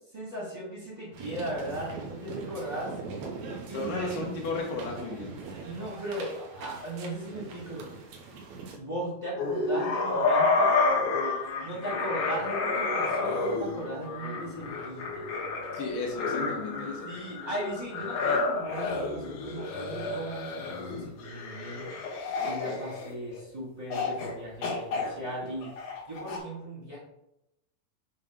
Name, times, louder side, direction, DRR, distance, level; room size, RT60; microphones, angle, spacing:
voice 1, 0.1-2.9 3.7-3.9 5.6-7.9 8.7-10.7 11.6-15.3 17.0-21.9 22.4-25.7 26.1-27.0, right 1 dB, 20° right, -8 dB, 1.1 m, -37 dB
sound 1, 1.1-8.8, right 4 dB, 85° right, 1.6 m, -41 dB
voice 2, 3.7-5.4 15.7-17.1, left 3 dB, 80° left, -1 dB, 3.2 m, -34 dB
sound 2, 9.4-23.4 23.9-24.3 24.6-26.4, left 3 dB, 60° left, 2.6 m, -30 dB
7.3 x 2.9 x 5.1 m, 0.86 s
omnidirectional pair, 4.5 m